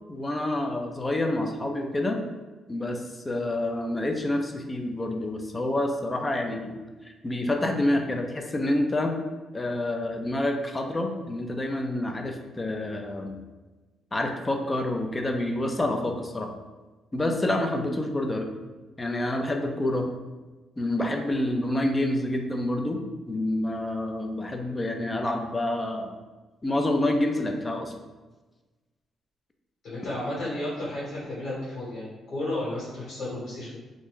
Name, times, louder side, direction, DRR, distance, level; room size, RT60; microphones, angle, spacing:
voice 1, 0.1-2.2 2.7-6.8 7.2-9.2 9.5-13.4 14.1-16.5 17.1-18.5 19.0-20.1 20.8-23.0 23.3-26.1 26.6-27.9, left 1 dB, 20° left, 4 dB, 0.4 m, -28 dB
voice 2, 29.8-33.8, left 1 dB, 65° left, -9 dB, 1.5 m, -33 dB
2.5 x 2.2 x 3.4 m, 1.2 s
cardioid pair, 90°, 0 cm